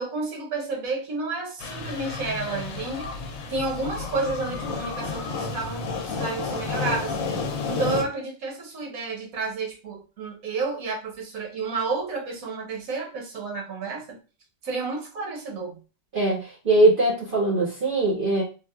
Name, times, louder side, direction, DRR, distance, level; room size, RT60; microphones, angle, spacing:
voice 1, 0.0-3.1 3.5-7.2 7.7-14.0 14.6-15.8, right 3 dB, 90° right, 1 dB, 1.3 m, -31 dB
sound 1, 1.6-8.0, left 4 dB, 85° left, 1.0 m, -31 dB
voice 2, 16.1-18.4, right 2 dB, 45° right, -3 dB, 0.8 m, -21 dB
3.4 x 2.4 x 2.3 m, 0.33 s
omnidirectional pair, 1.4 m